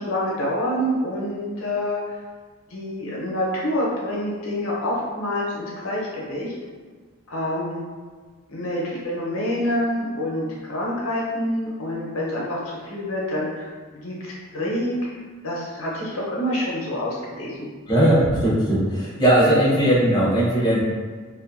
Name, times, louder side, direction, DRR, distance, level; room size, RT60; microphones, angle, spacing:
voice 1, 0.0-2.2 2.7-6.5 7.3-7.8 8.5-15.0 15.4-17.7, left 1 dB, 85° left, -5 dB, 0.7 m, -27 dB
voice 2, 17.9-20.8, right 1 dB, 20° left, -8 dB, 0.6 m, -18 dB
2.6 x 2.2 x 2.5 m, 1.5 s
head